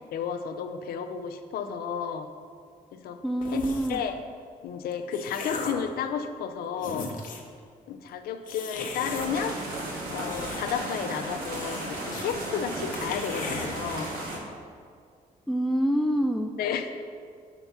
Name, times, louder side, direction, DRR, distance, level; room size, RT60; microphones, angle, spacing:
voice 1, 0.1-2.3 2.9-3.2 3.5-3.6 3.9-4.2 4.6-7.1 7.9-9.6 10.0-14.1 16.6-16.9, left 7 dB, 80° left, 7 dB, 0.5 m, -32 dB
voice 2, 3.2-4.0 15.5-16.5, equal, ahead, 4 dB, 0.3 m, -26 dB
sound 1, 3.4-4.1 4.7-5.9 6.5-6.6 6.8-7.5 8.5-9.3 10.0-10.9 11.1-11.2 11.5-12.3 12.6-12.7 12.9-13.7, left 4 dB, 60° left, 0.9 m, -37 dB
sound 2, 9.0-14.4, right 1 dB, 70° right, 1.6 m, -35 dB
5.9 x 4.4 x 5.5 m, 2.2 s
cardioid pair, 80°, 16 cm